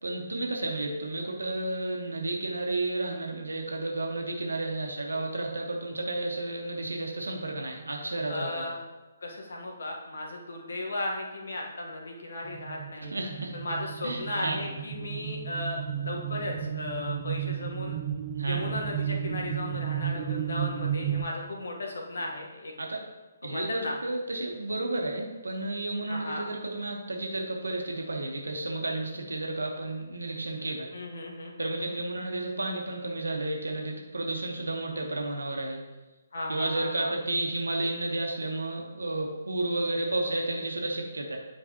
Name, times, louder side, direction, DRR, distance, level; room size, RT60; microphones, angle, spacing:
voice 1, 0.0-8.6 13.1-13.5 14.0-14.6 18.3-18.6 22.8-23.0 23.4-30.9 31.6-35.8 36.5-41.4, right 2 dB, 70° right, 1 dB, 1.2 m, -32 dB
voice 2, 8.3-8.8 9.2-13.1 13.5-18.0 18.4-22.7 23.4-24.0 26.1-26.5 30.9-32.0 36.3-37.1, left 2 dB, 60° left, 0 dB, 1.3 m, -36 dB
sound 1, 12.4-21.2, right 9 dB, 35° right, 0.8 m, -33 dB
9.5 x 4.6 x 3.0 m, 1.2 s
figure-of-eight pair, 135°, 0 cm